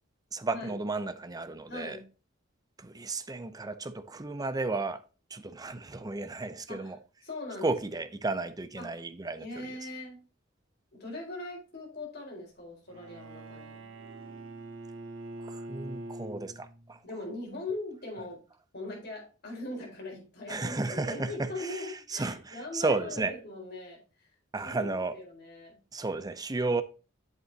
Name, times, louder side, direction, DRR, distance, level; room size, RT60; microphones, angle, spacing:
voice 1, 0.3-2.0 2.8-5.0 5.3-7.0 7.6-9.5 15.4-17.0 20.5-23.3 24.5-25.1 25.9-26.8, right 3 dB, 20° right, 0.6 m, -33 dB
voice 2, 1.7-2.0 6.7-6.9 7.2-7.7 8.8-9.0 9.4-10.2 10.9-13.8 17.0-18.4 18.7-24.3 24.6-25.8, left 2 dB, 55° left, 4.6 m, -41 dB
Bowed string instrument, 12.9-17.0, right 2 dB, 90° right, 0.9 m, -44 dB
8.1 x 7.8 x 2.8 m
head